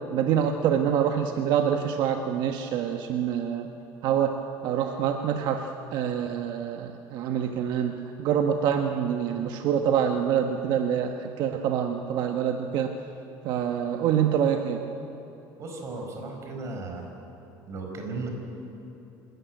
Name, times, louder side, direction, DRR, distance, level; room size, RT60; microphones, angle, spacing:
voice 1, 0.1-3.7 4.0-13.0 13.4-14.8, right 8 dB, 60° right, 5 dB, 1.1 m, -26 dB
voice 2, 15.6-17.1 17.7-18.3, right 3 dB, 40° right, 2 dB, 4.9 m, -35 dB
26.0 x 14.0 x 9.3 m, 3.0 s
cardioid pair, 135°, 8 cm